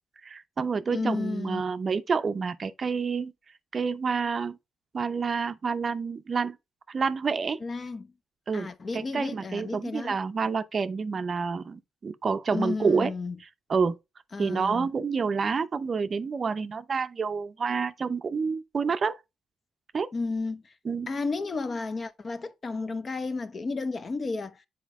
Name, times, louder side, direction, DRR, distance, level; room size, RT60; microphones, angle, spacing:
voice 1, 0.2-3.3 3.7-4.6 4.9-6.6 6.9-7.6 8.5-13.1 13.7-13.9 14.4-19.2 19.9-20.1 20.8-21.1, right 5 dB, 40° right, 0.5 m, -28 dB
voice 2, 0.9-1.6 7.6-8.1 8.5-10.2 12.5-13.4 14.3-14.9 20.1-20.7 21.1-24.6, left 3 dB, 35° left, 0.7 m, -32 dB
7.3 x 4.3 x 3.5 m
cardioid pair, 90°, 0 cm